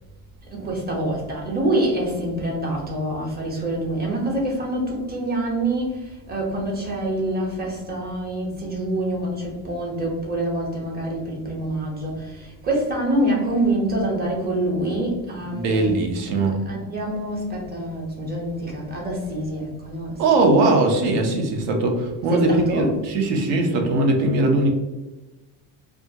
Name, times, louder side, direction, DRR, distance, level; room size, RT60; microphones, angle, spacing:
voice 1, 0.4-16.0 16.6-20.2 22.3-23.0, right 1 dB, 20° right, -2 dB, 0.9 m, -26 dB
voice 2, 15.5-16.6 20.2-24.7, right 2 dB, 70° right, 2 dB, 0.9 m, -20 dB
2.7 x 2.4 x 2.7 m, 1.1 s
cardioid pair, 125°, 46 cm